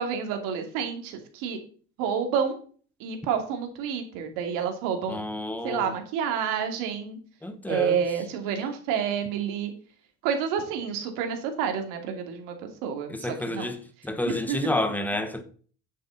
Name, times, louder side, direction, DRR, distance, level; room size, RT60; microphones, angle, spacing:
voice 1, 0.0-1.6 2.0-2.5 3.0-5.2 5.6-7.2 7.7-9.7 10.2-12.5 12.8-13.1 13.5-13.7 14.5-14.7, right 7 dB, 90° right, 2.7 m, -29 dB
voice 2, 5.1-5.9 7.4-8.1 13.1-15.4, left 1 dB, 5° left, 1.1 m, -30 dB
9.7 x 8.1 x 4.1 m
cardioid pair, 155°, 31 cm